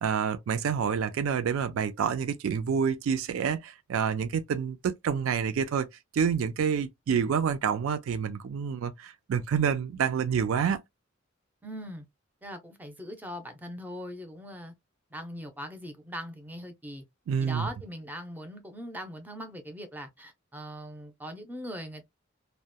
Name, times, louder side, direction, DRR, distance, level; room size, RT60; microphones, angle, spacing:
voice 1, 0.0-5.9 6.1-10.8 17.3-17.7, right 7 dB, 85° right, 0.3 m, -28 dB
voice 2, 11.6-12.0 12.4-14.7 15.1-17.0 17.4-22.0, equal, 10° right, 0.5 m, -40 dB
2.7 x 2.1 x 2.2 m
head